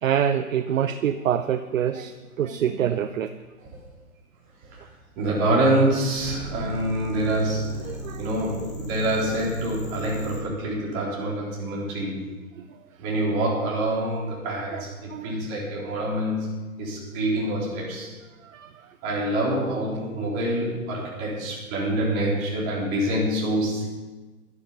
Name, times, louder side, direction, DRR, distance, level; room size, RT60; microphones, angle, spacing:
voice 1, 0.0-3.3 7.9-8.3 12.6-12.7 14.7-14.8 15.1-15.3 18.4-18.9, right 9 dB, 60° right, 10 dB, 0.7 m, -26 dB
voice 2, 5.2-7.9 8.2-12.3 13.0-18.1 19.0-23.9, right 1 dB, 25° right, -4 dB, 3.9 m, -26 dB
sound 1, 6.1-10.4, left 1 dB, 40° left, 4.3 m, -37 dB
12.0 x 11.0 x 5.4 m, 1.3 s
hypercardioid pair, 145°, 45 cm